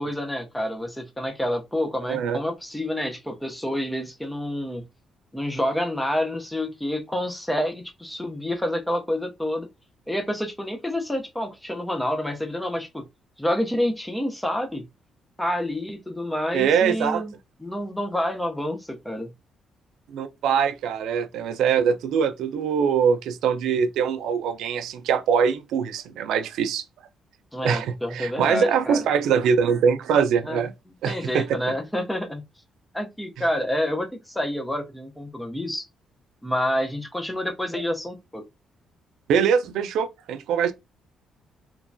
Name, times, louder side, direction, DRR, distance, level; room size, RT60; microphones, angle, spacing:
voice 1, 0.0-4.9 5.3-9.7 10.1-13.0 13.4-14.9 15.4-17.3 17.6-19.3 27.5-29.0 30.4-30.6 31.1-32.4 32.9-35.9 36.4-38.4, left 1 dB, 5° left, 0.4 m, -28 dB
voice 2, 16.5-17.2 20.1-26.8 27.6-30.7 31.0-31.5 39.3-40.7, right 7 dB, 85° right, 0.3 m, -23 dB
3.0 x 2.2 x 2.5 m
cardioid pair, 175°, 0 cm